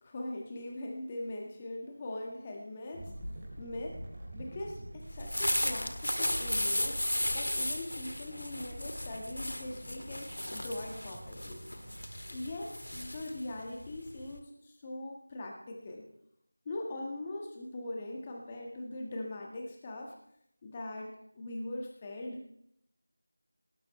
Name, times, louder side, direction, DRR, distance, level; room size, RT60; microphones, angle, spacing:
voice 1, 0.0-3.1 3.6-4.0 4.3-7.0 7.3-11.6 12.3-16.1 16.6-20.1 20.6-22.4, left 1 dB, 15° left, 1 dB, 1.5 m, -41 dB
sound 1, 2.9-13.0, right 1 dB, 15° right, 3.3 m, -46 dB
sound 2, 5.1-14.4, left 1 dB, 90° left, 2.1 m, -35 dB
18.5 x 12.5 x 3.2 m, 0.72 s
figure-of-eight pair, 175°, 0 cm